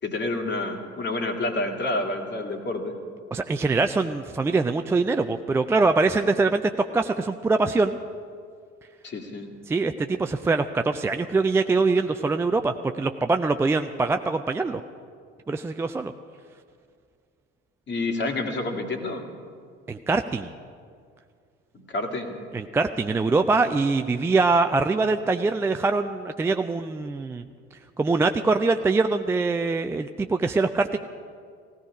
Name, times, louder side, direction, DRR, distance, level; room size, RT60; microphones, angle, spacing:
voice 1, 0.0-2.9 9.0-9.5 17.9-19.2 21.7-22.4, left 2 dB, 30° left, 3 dB, 2.3 m, -29 dB
voice 2, 3.3-8.0 9.7-14.8 15.5-16.1 19.9-20.5 22.5-27.4 28.0-31.0, right 3 dB, 10° right, 7 dB, 0.3 m, -23 dB
18.0 x 16.0 x 4.9 m, 2.2 s
figure-of-eight pair, 60°, 35 cm